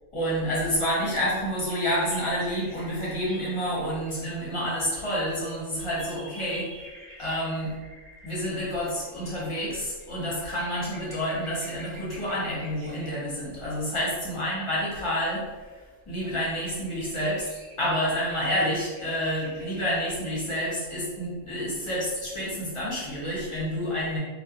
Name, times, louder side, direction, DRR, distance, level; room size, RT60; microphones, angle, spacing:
voice 1, 0.1-6.7 7.2-7.7 8.2-15.4 16.1-17.5 17.8-24.2, equal, 30° left, -7 dB, 0.6 m, -29 dB
sound 1, 0.9-4.4 5.1-13.3 14.5-14.6 15.2-16.2 16.5-20.2, right 1 dB, 65° right, 0.9 m, -50 dB
2.3 x 2.2 x 2.8 m, 1.3 s
omnidirectional pair, 1.3 m